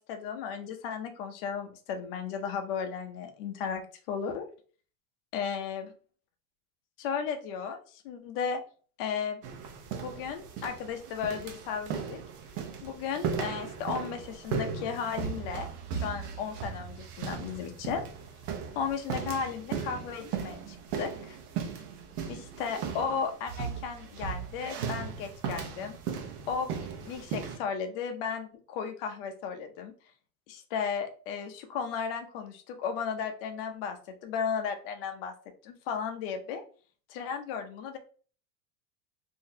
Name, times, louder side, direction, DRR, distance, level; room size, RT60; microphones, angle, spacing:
voice 1, 0.0-4.5 5.3-5.9 7.0-8.6 9.0-9.4 10.0-12.2 12.8-18.0 18.8-21.4 22.3-26.0 26.5-29.9 30.5-34.0 34.2-35.3 35.6-36.6 37.1-38.0, left 6 dB, 40° left, 5 dB, 0.5 m, -35 dB
sound 1, 9.4-27.6, right 6 dB, 80° right, 0.9 m, -37 dB
3.8 x 2.7 x 2.7 m, 0.41 s
supercardioid pair, 170°, 46 cm